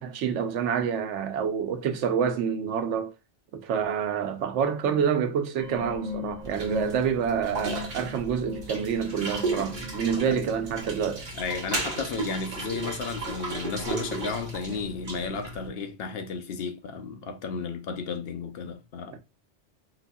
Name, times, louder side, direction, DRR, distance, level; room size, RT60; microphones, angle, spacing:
voice 1, 0.0-3.1 3.5-11.3 19.1-19.2, right 7 dB, 90° right, 0.9 m, -27 dB
sound 1, 5.6-10.9, left 5 dB, 45° left, 1.5 m, -38 dB
sound 2, 6.4-15.7, right 3 dB, 45° right, 1.1 m, -35 dB
voice 2, 11.3-19.2, left 5 dB, 65° left, 0.8 m, -33 dB
3.9 x 2.7 x 2.2 m
omnidirectional pair, 1.2 m